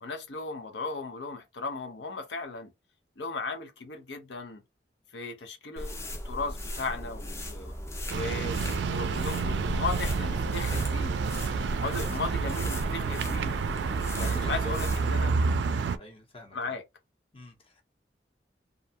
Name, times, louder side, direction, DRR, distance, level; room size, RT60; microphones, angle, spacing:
voice 1, 0.0-2.7 3.2-4.6 5.1-6.0 6.2-7.7 8.1-11.2 11.8-13.6 14.2-15.3 16.5-16.8, left 3 dB, 80° left, 0.7 m, -36 dB
sound 1, 5.8-15.3, left 1 dB, 15° left, 0.4 m, -37 dB
sound 2, 8.1-16.0, right 5 dB, 75° right, 0.3 m, -29 dB
voice 2, 11.8-12.7 14.1-14.7 15.2-15.4 16.0-16.8 17.3-17.8, left 1 dB, 30° left, 0.8 m, -47 dB
2.5 x 2.2 x 2.7 m
head